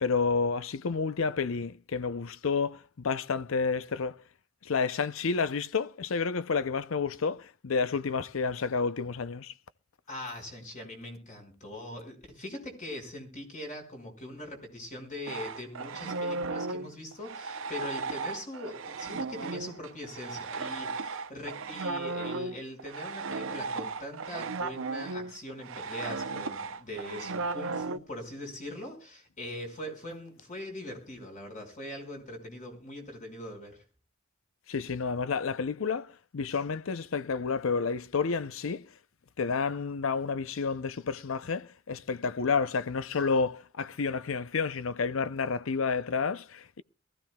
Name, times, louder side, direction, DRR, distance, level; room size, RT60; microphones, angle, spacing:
voice 1, 0.0-4.1 4.6-9.5 34.7-38.9 39.4-46.8, left 5 dB, 75° left, 0.6 m, -30 dB
voice 2, 10.1-33.8, left 1 dB, 40° left, 5.3 m, -42 dB
sound 1, 15.3-28.0, right 3 dB, 70° right, 0.6 m, -35 dB
22.5 x 14.5 x 2.3 m
head